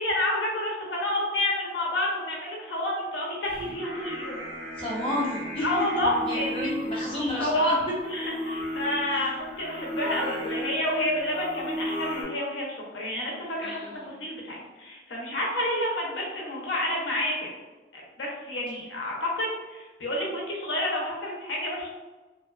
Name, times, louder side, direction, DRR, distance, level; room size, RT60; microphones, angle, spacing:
voice 1, 0.0-4.4 5.6-6.6 7.4-17.5 17.9-21.9, left 1 dB, 80° left, -2 dB, 0.6 m, -29 dB
Singing, 3.5-12.2, equal, 25° right, 1.5 m, -35 dB
voice 2, 4.8-5.9 6.3-7.7 9.1-9.3 13.6-14.1, left 1 dB, 30° left, -7 dB, 0.8 m, -31 dB
2.6 x 2.2 x 2.2 m, 1.2 s
head